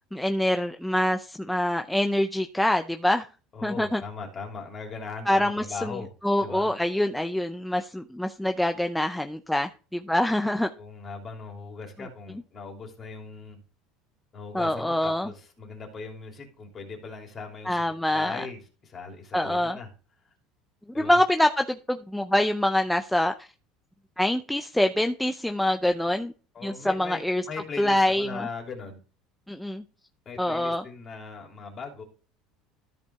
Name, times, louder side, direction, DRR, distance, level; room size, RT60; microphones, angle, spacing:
voice 1, 0.1-3.3 3.6-4.0 5.3-5.8 6.2-10.7 14.5-15.3 17.7-18.5 19.3-19.8 21.0-23.5 24.2-26.3 26.6-27.4 27.8-28.5 29.5-29.8 30.4-30.8, left 1 dB, 5° left, 0.5 m, -25 dB
voice 2, 3.5-6.1 6.4-6.7 10.7-13.6 14.3-19.9 20.9-21.2 26.5-29.0 30.2-32.0, left 4 dB, 30° left, 3.1 m, -39 dB
13.5 x 5.4 x 3.5 m
cardioid pair, 135°, 0 cm